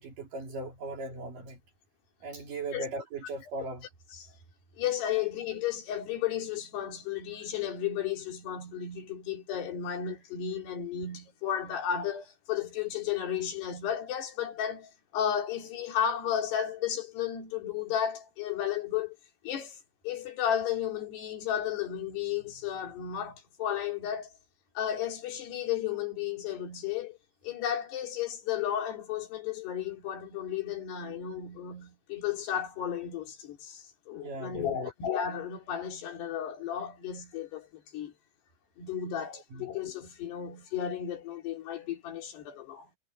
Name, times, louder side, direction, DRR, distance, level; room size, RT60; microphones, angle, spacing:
voice 1, 0.0-1.6 2.2-3.9 34.1-34.9 39.3-39.7, right 2 dB, 55° right, 4.4 m, -38 dB
voice 2, 4.8-19.2 19.4-19.8 20.0-24.3 24.8-27.2 27.4-38.1 38.8-42.9, left 9 dB, 85° left, 5.2 m, -33 dB
omnidirectional pair, 4.6 m